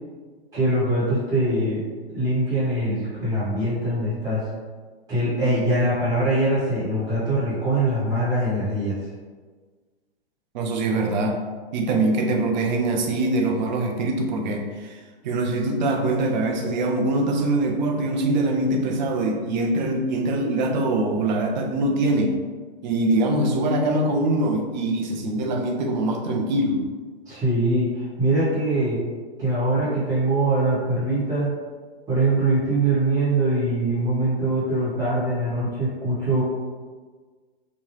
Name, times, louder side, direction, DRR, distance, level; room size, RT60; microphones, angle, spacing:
voice 1, 0.5-1.8 2.1-4.4 5.1-9.0 27.3-29.0 29.4-31.5 32.1-36.4, right 1 dB, 10° right, -10 dB, 1.2 m, -23 dB
voice 2, 10.5-11.4 11.7-15.0 15.2-22.3 22.8-26.8, right 2 dB, 50° right, 2 dB, 0.6 m, -23 dB
3.0 x 2.2 x 3.1 m, 1.4 s
hypercardioid pair, 125°, 30 cm